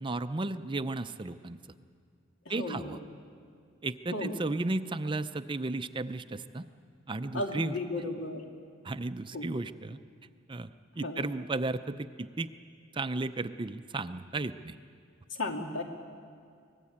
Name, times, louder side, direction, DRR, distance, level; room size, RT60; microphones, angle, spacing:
voice 1, 0.0-1.6 2.5-3.0 3.8-6.6 7.1-7.7 8.8-10.0 10.5-10.7 11.0-12.5 12.9-14.7, right 2 dB, 25° right, 11 dB, 0.5 m, -34 dB
voice 2, 2.5-2.9 4.1-4.4 7.3-8.4 9.3-9.5 11.0-11.3 15.4-15.8, left 2 dB, 70° left, 2 dB, 2.6 m, -34 dB
24.5 x 19.0 x 8.6 m, 2.3 s
head